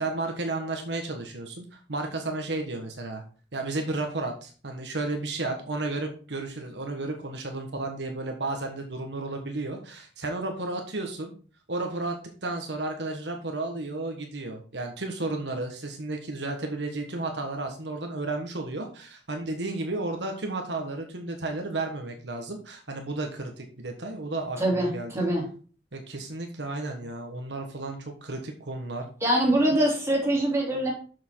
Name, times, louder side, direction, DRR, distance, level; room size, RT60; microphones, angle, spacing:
voice 1, 0.0-3.2 3.5-11.3 11.7-25.3 25.9-29.1, right 2 dB, 75° right, 3 dB, 1.4 m, -33 dB
voice 2, 24.6-25.4 29.2-30.9, right 1 dB, 15° right, -3 dB, 3.3 m, -24 dB
6.8 x 6.5 x 4.7 m, 0.40 s
head